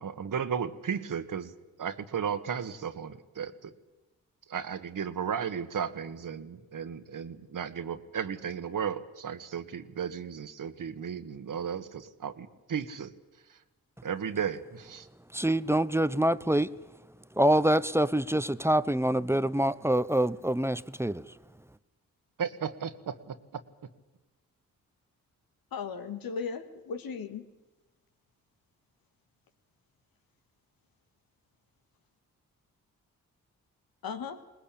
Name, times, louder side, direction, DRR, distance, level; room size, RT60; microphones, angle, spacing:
voice 1, 0.0-1.5 1.8-3.7 4.5-13.1 14.0-15.1 22.4-23.4, right 7 dB, 60° right, 1.5 m, -34 dB
voice 2, 15.3-16.7 17.4-21.2, right 1 dB, 5° right, 0.8 m, -25 dB
voice 3, 25.7-27.5 34.0-34.4, left 5 dB, 80° left, 1.9 m, -36 dB
22.0 x 19.5 x 8.7 m
supercardioid pair, 45°, 35 cm